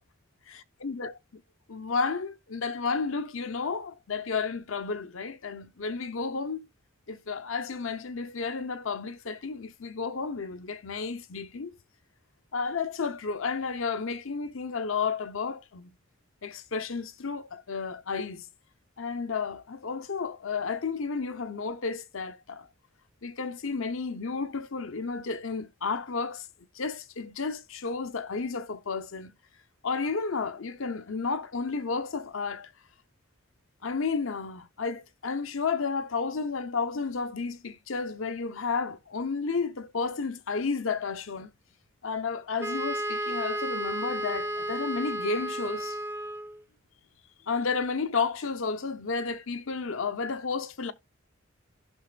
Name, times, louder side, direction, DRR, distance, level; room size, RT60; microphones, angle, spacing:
voice 1, 0.8-1.1 1.7-6.7 7.1-11.7 12.5-15.9 16.4-18.5 19.0-22.7 23.2-26.5 26.7-29.3 29.8-32.7 33.8-41.5 42.0-46.0 47.5-50.9, left 4 dB, 70° left, 0.8 m, -32 dB
Wind instrument woodwind instrument, 42.6-46.6, right 1 dB, 10° right, 0.6 m, -32 dB
16.0 x 5.9 x 2.3 m
head